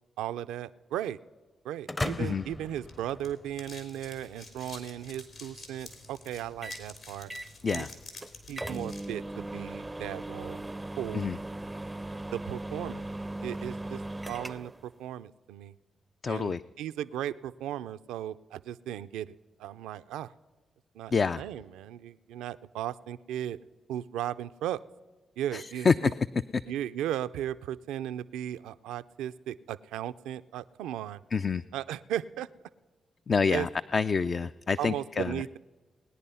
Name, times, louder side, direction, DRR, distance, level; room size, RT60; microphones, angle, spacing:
voice 1, 0.2-1.2 1.6-7.3 7.7-7.9 8.5-10.6 11.0-11.3 12.3-13.0 13.4-14.0 14.3-15.7 16.3-20.3 20.9-23.6 23.9-24.8 25.4-26.1 26.6-31.2 31.7-32.5 33.5-33.7 34.8-35.6, right 11 dB, 85° right, 14 dB, 0.4 m, -36 dB
sound 1, 1.9-3.8, left 2 dB, 25° left, 0.7 m, -36 dB
sound 2, 2.5-9.1, left 3 dB, 70° left, 3.6 m, -48 dB
sound 3, 6.6-6.9 7.3-7.9 8.2-8.3 8.6-14.8, right 1 dB, 15° right, 0.4 m, -38 dB
voice 2, 16.2-16.6 21.1-21.4 25.5-25.9 31.3-31.6 33.3-35.4, left 5 dB, 50° left, 13 dB, 0.3 m, -27 dB
20.0 x 10.0 x 5.5 m, 1.3 s
supercardioid pair, 50°, 0 cm